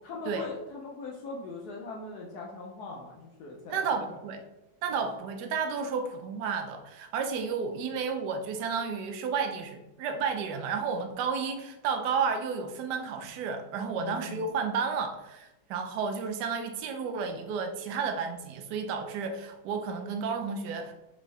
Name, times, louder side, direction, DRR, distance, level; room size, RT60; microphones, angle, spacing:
voice 1, 0.0-4.0 4.9-5.1 14.0-14.4, left 3 dB, 75° left, 0 dB, 0.9 m, -41 dB
voice 2, 3.7-4.4 4.8-20.9, right 5 dB, 70° right, 5 dB, 1.0 m, -32 dB
4.0 x 3.5 x 3.2 m, 0.94 s
omnidirectional pair, 2.2 m